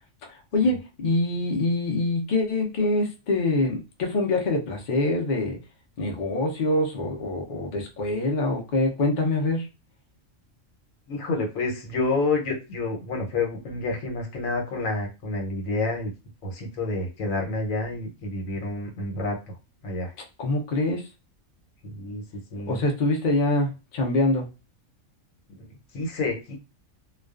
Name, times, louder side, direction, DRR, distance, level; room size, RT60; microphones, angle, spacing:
voice 1, 0.3-5.6 6.0-9.7 20.4-21.1 22.7-24.5, left 2 dB, 50° left, 1 dB, 0.6 m, -25 dB
voice 2, 11.1-16.1 16.4-19.5 19.8-20.1 21.8-22.2 22.5-22.8 25.5-26.6, left 3 dB, 80° left, 1 dB, 1.2 m, -29 dB
2.3 x 2.3 x 2.3 m, 0.29 s
omnidirectional pair, 1.4 m